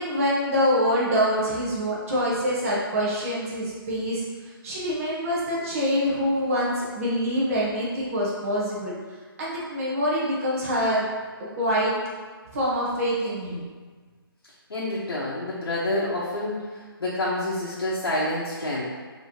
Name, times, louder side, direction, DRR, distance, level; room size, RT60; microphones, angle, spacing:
voice 1, 0.0-4.2 4.6-8.9 9.4-11.1 11.5-12.0 12.5-13.7, equal, 35° right, -6 dB, 1.0 m, -25 dB
voice 2, 14.7-16.6 17.0-18.8, left 1 dB, 80° left, -7 dB, 1.0 m, -27 dB
4.7 x 3.0 x 2.8 m, 1.5 s
hypercardioid pair, 160°, 13 cm